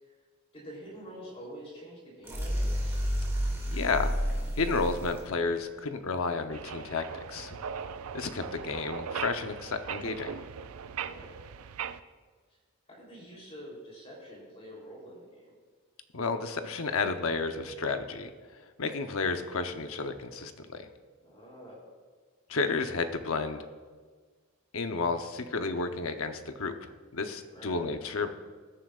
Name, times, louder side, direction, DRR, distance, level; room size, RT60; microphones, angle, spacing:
voice 1, 0.5-3.0 11.0-11.4 12.5-12.6 12.9-15.6 21.2-21.9 27.5-28.1, equal, 25° left, -4 dB, 3.4 m, -47 dB
sound 1, 2.2-5.2, equal, 10° right, 2.3 m, -30 dB
voice 2, 3.7-4.1 4.6-7.6 8.1-10.4 16.1-18.3 18.8-20.9 22.5-23.6 24.7-26.7 27.1-28.3, left 4 dB, 70° left, 7 dB, 0.8 m, -31 dB
sound 2, 6.5-12.0, right 7 dB, 80° right, 0.4 m, -39 dB
20.0 x 9.8 x 2.5 m, 1.5 s
head